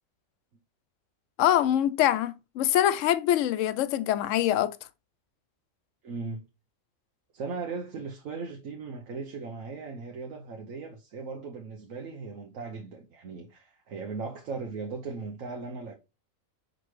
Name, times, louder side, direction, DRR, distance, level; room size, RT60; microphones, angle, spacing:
voice 1, 1.4-4.8, left 12 dB, 70° left, 0.9 m, -24 dB
voice 2, 6.0-6.4 7.3-15.9, right 4 dB, 80° right, 1.3 m, -38 dB
6.2 x 5.3 x 3.2 m
omnidirectional pair, 1.4 m